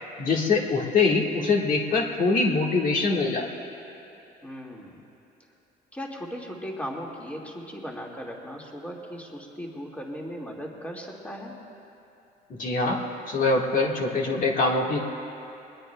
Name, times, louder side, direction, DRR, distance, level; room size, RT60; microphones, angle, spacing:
voice 1, 0.2-3.5 12.5-13.0 13.3-15.0, left 3 dB, 55° left, -1 dB, 1.6 m, -23 dB
voice 2, 4.4-5.0 5.9-11.5, equal, 10° left, -2 dB, 2.0 m, -37 dB
22.0 x 20.5 x 2.2 m, 2.9 s
cardioid pair, 110°, 17 cm